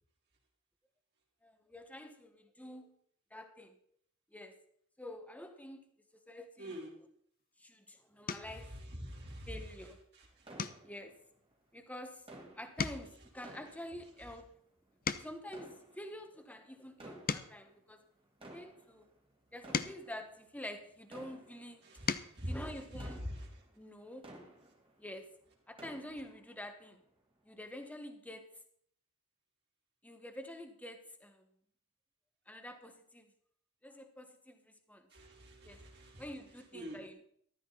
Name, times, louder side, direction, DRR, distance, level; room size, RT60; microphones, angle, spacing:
voice 1, 1.4-3.0 3.3-3.8 4.3-4.6 5.0-6.8 7.6-8.7 9.5-10.0 10.8-11.2 11.7-12.3 12.6-14.5 15.2-18.0 18.4-19.1 19.5-21.8 22.4-23.3 23.7-24.3 25.0-25.3 25.7-27.0 27.4-28.6 30.0-31.5 32.5-33.3 33.8-35.1 35.6-35.9 36.2-37.2, left 1 dB, 5° left, 6 dB, 1.4 m, -48 dB
voice 2, 6.6-7.0 8.9-9.5 22.3-22.5 35.1-36.2 36.7-37.0, equal, 50° right, -1 dB, 3.8 m, -44 dB
sound 1, 7.4-7.7 8.2-8.7 9.2-9.5 9.8-10.0 10.5-12.4 12.6-15.6 16.2-18.7 19.3-21.2 21.7-22.4 23.8-23.9 24.2-24.4, left 5 dB, 40° left, 0.7 m, -42 dB
sound 2, 10.4-11.5 12.3-14.6 15.4-16.4 16.9-17.8 18.2-25.2 25.5-26.6 27.1-27.2 27.8-27.9, right 1 dB, 25° right, 2.3 m, -55 dB
14.0 x 13.0 x 4.1 m, 0.63 s
head